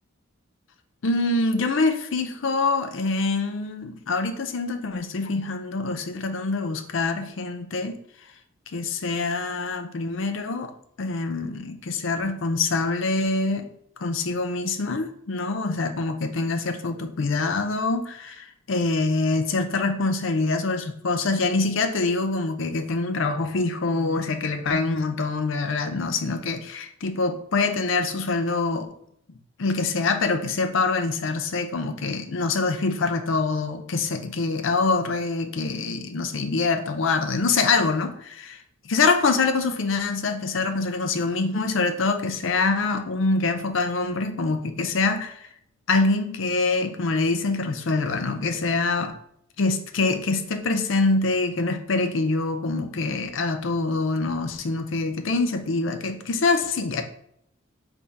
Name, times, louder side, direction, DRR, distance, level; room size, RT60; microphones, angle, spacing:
voice 1, 1.0-8.0 8.7-10.7 11.0-13.7 14.0-28.9 29.6-38.6 38.9-45.5 45.9-49.1 49.6-57.0, left 3 dB, 65° left, 7 dB, 0.5 m, -25 dB
3.6 x 3.5 x 4.0 m, 0.70 s
head